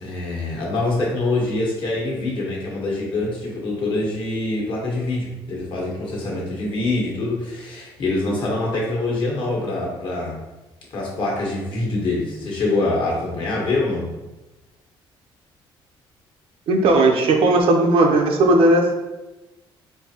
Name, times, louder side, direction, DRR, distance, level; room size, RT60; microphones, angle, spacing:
voice 1, 0.0-10.4 10.9-14.1, left 2 dB, 55° left, -3 dB, 1.3 m, -25 dB
voice 2, 16.7-18.9, right 2 dB, 70° right, 2 dB, 0.6 m, -16 dB
4.5 x 2.6 x 2.8 m, 1.0 s
cardioid pair, 125°, 10 cm